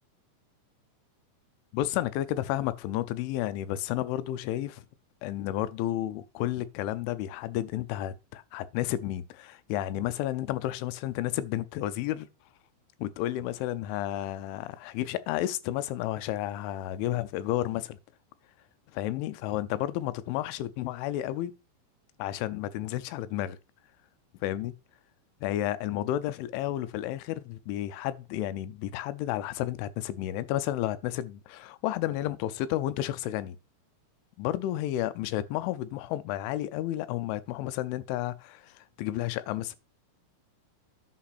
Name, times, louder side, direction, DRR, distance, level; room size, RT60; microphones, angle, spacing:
voice 1, 1.7-4.8 5.2-12.3 13.0-18.0 18.9-21.5 22.2-23.6 24.4-24.7 25.4-33.6 34.4-39.8, left 13 dB, 85° left, 3.0 m, -31 dB
10.0 x 5.3 x 4.2 m
omnidirectional pair, 5.4 m